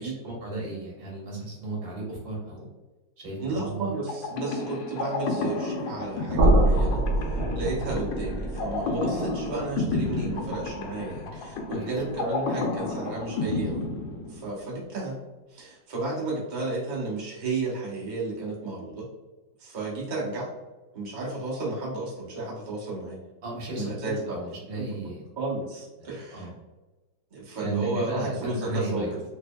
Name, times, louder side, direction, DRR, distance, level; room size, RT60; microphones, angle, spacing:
voice 1, 0.0-2.7 3.2-3.9 11.7-11.9 23.4-25.2 26.0-26.5 27.6-29.1, right 2 dB, 90° right, -3 dB, 2.0 m, -35 dB
voice 2, 3.4-13.9 14.3-15.2 15.5-19.1 19.6-20.5 20.9-23.2 23.8-24.4 24.8-24.9 25.4-26.5 27.3-29.2, right 2 dB, 30° right, -5 dB, 0.9 m, -33 dB
sound 1, 4.1-14.8, left 3 dB, 85° left, 1.3 m, -32 dB
sound 2, 6.3-12.2, right 1 dB, 70° right, 1.2 m, -27 dB
4.1 x 3.0 x 2.2 m, 1.1 s
omnidirectional pair, 2.0 m